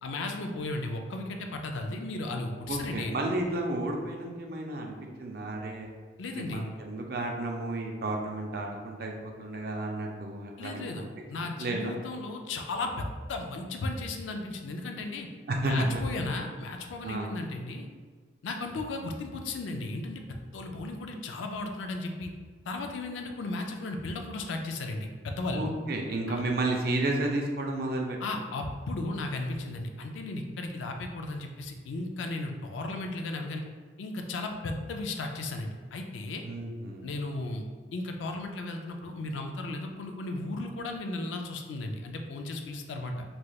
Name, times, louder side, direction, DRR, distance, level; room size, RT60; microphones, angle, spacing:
voice 1, 0.0-3.1 6.2-6.7 10.6-15.3 15.6-17.9 18.4-20.2 20.5-22.3 22.7-25.7 26.3-26.4 28.2-33.6 34.0-36.4 37.0-37.6 37.9-43.2, left 2 dB, 80° left, 4 dB, 0.4 m, -35 dB
voice 2, 2.7-5.9 6.4-11.1 11.3-12.0 15.5-16.0 17.0-17.3 25.5-28.4 36.4-37.1, right 2 dB, 50° right, 1 dB, 0.4 m, -32 dB
3.2 x 2.8 x 2.3 m, 1.5 s
head